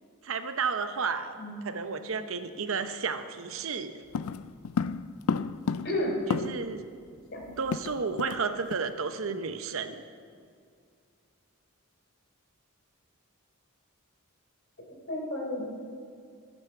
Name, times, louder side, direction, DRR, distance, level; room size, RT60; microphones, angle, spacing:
voice 1, 0.2-1.4 1.6-4.0 6.3-6.8 7.6-10.0, right 5 dB, 65° right, 9 dB, 0.7 m, -32 dB
sound 1, 4.1-6.8 7.1-7.2 7.4-8.4 8.7-8.9 9.3-9.5, left 5 dB, 85° left, 0.4 m, -32 dB
voice 2, 15.1-15.6, left 1 dB, 55° left, -1 dB, 3.5 m, -31 dB
12.5 x 9.2 x 6.9 m, 2.3 s
head